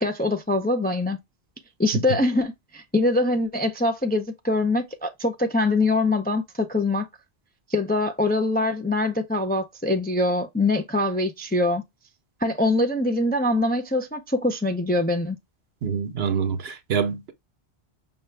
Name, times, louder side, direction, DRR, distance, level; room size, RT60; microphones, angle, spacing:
voice 1, 0.0-1.2 1.8-7.1 7.7-11.8 12.4-15.4, left 2 dB, 15° left, 0.3 m, -23 dB
voice 2, 15.8-17.3, right 6 dB, 75° right, 1.0 m, -26 dB
5.7 x 2.3 x 3.2 m
omnidirectional pair, 1.1 m